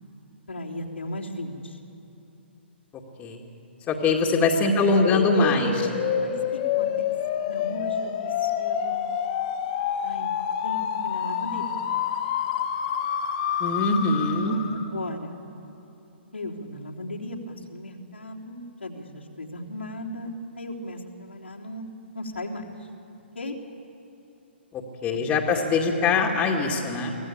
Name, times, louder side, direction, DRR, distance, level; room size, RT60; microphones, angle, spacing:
voice 1, 0.5-1.8 4.6-5.8 6.2-6.9 7.4-9.1 10.0-10.3 10.6-11.8 14.0-15.4 16.3-21.9 22.1-22.6 23.4-23.6 25.3-25.4, left 1 dB, 85° left, -4 dB, 3.5 m, -37 dB
voice 2, 3.9-5.8 13.6-14.6 24.7-27.1, left 3 dB, 20° left, 1 dB, 2.3 m, -23 dB
sound 1, 5.0-14.9, left 8 dB, 40° left, 1.7 m, -28 dB
24.5 x 17.0 x 8.8 m, 3.0 s
figure-of-eight pair, 125°, 6 cm